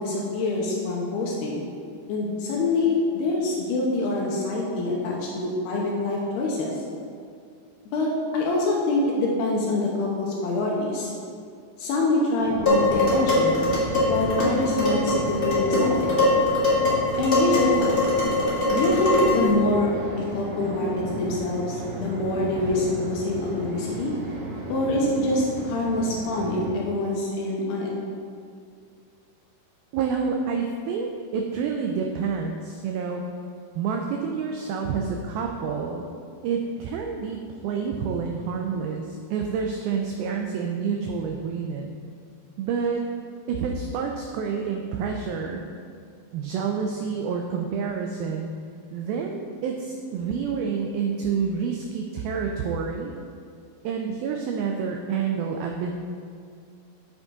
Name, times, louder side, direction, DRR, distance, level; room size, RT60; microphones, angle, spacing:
voice 1, 0.0-1.6 2.1-6.7 7.9-11.1 11.8-13.6 14.1-16.1 17.2-17.9 18.7-20.9 21.2-24.1 24.7-27.9, left 2 dB, 75° left, -3 dB, 2.8 m, -25 dB
sound 1, 12.4-26.7, right 2 dB, 65° right, 3.3 m, -34 dB
Dishes pots and pans, 12.7-19.5, left 2 dB, 45° left, 0.6 m, -22 dB
voice 2, 29.9-33.2 33.8-36.1 36.4-41.9 42.6-43.0 43.5-45.6 46.3-48.5 48.9-53.1 53.8-55.9, right 6 dB, 85° right, 2 dB, 2.1 m, -28 dB
9.1 x 6.1 x 3.9 m, 2.3 s
omnidirectional pair, 4.8 m